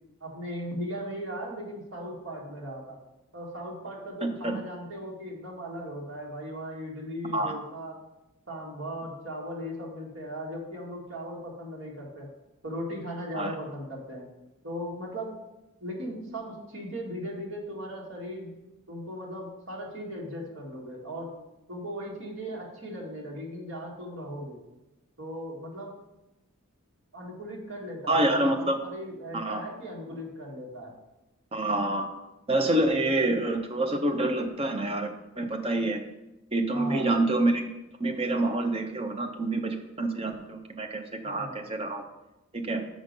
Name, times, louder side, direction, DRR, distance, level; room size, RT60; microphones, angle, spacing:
voice 1, 0.2-3.0 3.3-8.0 8.5-12.3 12.6-14.2 14.6-15.4 15.8-18.5 18.9-21.3 21.7-24.6 25.2-26.0 27.1-30.9 36.7-37.2 41.2-41.6, equal, 70° right, -2 dB, 1.9 m, -38 dB
voice 2, 4.2-4.6 7.3-7.5 13.3-13.5 28.1-28.8 29.3-29.6 31.5-32.1 32.5-35.1 35.4-36.0 36.5-37.7 38.0-42.0 42.5-42.8, right 1 dB, 25° right, 4 dB, 0.7 m, -27 dB
6.3 x 5.2 x 5.2 m, 0.96 s
head